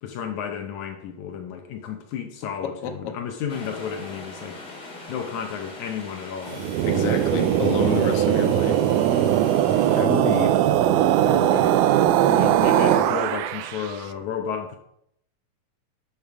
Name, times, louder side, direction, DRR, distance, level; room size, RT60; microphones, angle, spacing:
voice 1, 0.0-4.6 5.1-7.2 12.3-14.8, left 7 dB, 75° left, 2.2 m, -32 dB
voice 2, 2.6-3.1 6.9-8.8 10.0-10.5 11.2-11.7, left 5 dB, 55° left, 2.0 m, -29 dB
sound 1, 3.5-10.0, left 2 dB, 35° left, 2.8 m, -41 dB
sound 2, 6.5-13.9, right 11 dB, 85° right, 2.1 m, -20 dB
12.5 x 7.2 x 4.8 m
omnidirectional pair, 3.5 m